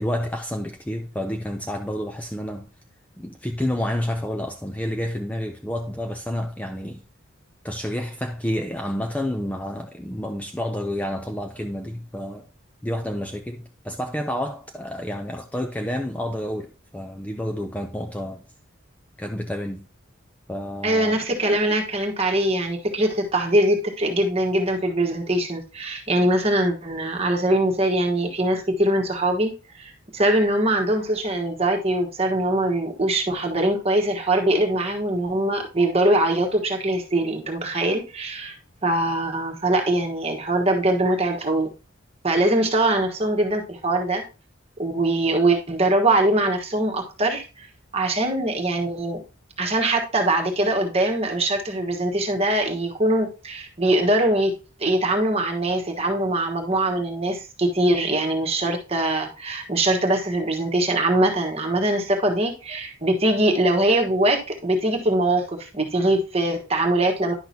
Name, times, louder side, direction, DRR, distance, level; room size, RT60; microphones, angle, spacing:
voice 1, 0.0-2.7 3.2-7.0 7.6-12.5 12.8-18.4 19.2-19.9 20.5-21.2, left 1 dB, 5° left, 0.5 m, -29 dB
voice 2, 20.8-29.5 29.8-38.6 38.8-41.7 42.2-44.2 44.8-47.7 47.9-49.2 49.6-67.3, right 1 dB, 30° right, 1.3 m, -22 dB
10.5 x 5.9 x 2.8 m
head